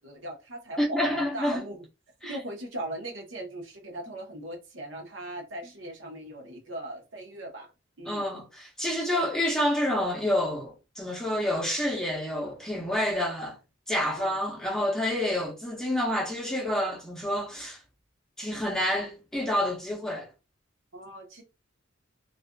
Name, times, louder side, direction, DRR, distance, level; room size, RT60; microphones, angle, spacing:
voice 1, 0.0-1.8 2.3-7.7 8.0-8.2 14.1-14.4 20.9-21.4, right 1 dB, 65° right, 0.8 m, -39 dB
voice 2, 0.8-1.6 2.2-2.4 8.1-13.6 13.9-17.8 18.4-20.3, left 1 dB, 5° left, 0.8 m, -28 dB
2.4 x 2.4 x 2.2 m
head